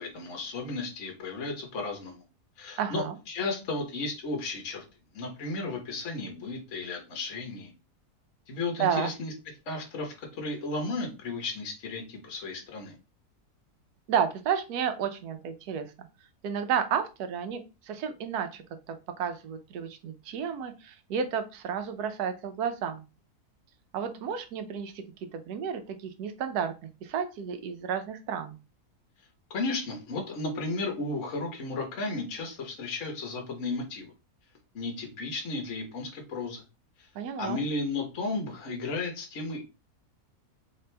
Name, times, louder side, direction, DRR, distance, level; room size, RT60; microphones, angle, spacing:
voice 1, 0.0-2.2 2.6-4.8 5.1-7.7 8.5-9.3 9.7-12.9 29.5-34.1 34.7-36.6 37.0-37.1 37.4-39.6, left 3 dB, 55° left, 1 dB, 1.3 m, -34 dB
voice 2, 2.8-3.2 8.8-9.1 14.1-15.9 16.4-23.0 23.9-25.0 25.3-26.7 27.0-28.6 37.1-37.6, right 7 dB, 80° right, 8 dB, 1.2 m, -31 dB
3.3 x 2.9 x 3.3 m, 0.29 s
omnidirectional pair, 1.7 m